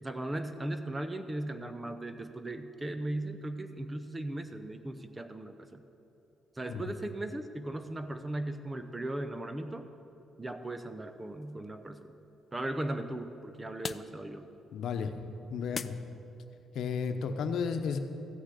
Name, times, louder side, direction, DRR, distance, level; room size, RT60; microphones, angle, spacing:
voice 1, 0.0-5.8 6.6-9.9 10.4-12.1 12.5-14.5, right 1 dB, 20° right, 8 dB, 0.7 m, -37 dB
sound 1, 10.6-16.6, left 6 dB, 45° left, 0.4 m, -47 dB
voice 2, 14.7-15.1 15.5-16.0 16.7-18.0, left 6 dB, 75° left, 7 dB, 0.9 m, -33 dB
14.5 x 6.4 x 8.3 m, 3.0 s
cardioid pair, 90°, 0 cm